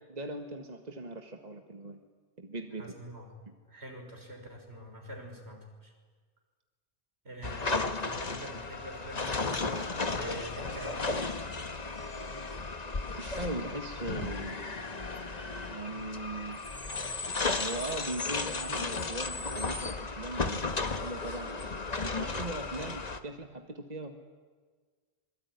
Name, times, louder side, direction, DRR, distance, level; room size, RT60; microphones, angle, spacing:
voice 1, 0.1-2.0 2.4-2.9 13.2-14.7 15.7-16.6 17.6-21.7 22.0-24.2, right 2 dB, 40° right, 5 dB, 1.8 m, -39 dB
voice 2, 2.8-3.3 3.7-5.9 7.2-11.3, right 1 dB, 75° right, 2 dB, 6.2 m, -45 dB
sound 1, 7.4-23.2, left 3 dB, 40° left, 1.4 m, -34 dB
26.0 x 23.0 x 9.7 m, 1.5 s
omnidirectional pair, 1.1 m